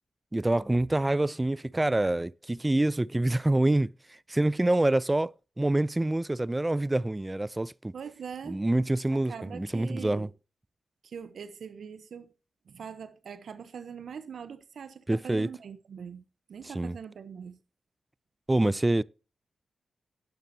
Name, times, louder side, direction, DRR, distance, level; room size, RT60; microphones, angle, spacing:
voice 1, 0.3-7.9 8.5-10.3 15.1-15.5 16.6-17.0 18.5-19.0, right 1 dB, 20° right, 0.4 m, -26 dB
voice 2, 7.9-8.6 9.1-10.3 11.0-12.3 12.7-16.2 16.5-17.6, right 7 dB, 75° right, 1.0 m, -42 dB
18.5 x 6.6 x 2.8 m
supercardioid pair, 45°, 0 cm